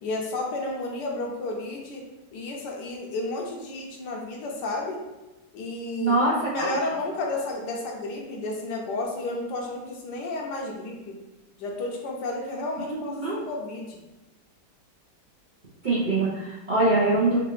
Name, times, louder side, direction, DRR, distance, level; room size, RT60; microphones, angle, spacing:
voice 1, 0.0-2.0 2.3-5.0 5.5-6.2 6.5-11.1 11.6-14.0, left 2 dB, 75° left, 0 dB, 1.3 m, -32 dB
voice 2, 6.0-6.8 12.9-13.4 15.8-17.4, right 2 dB, 60° right, -9 dB, 0.5 m, -23 dB
3.8 x 2.4 x 3.0 m, 1.1 s
omnidirectional pair, 1.9 m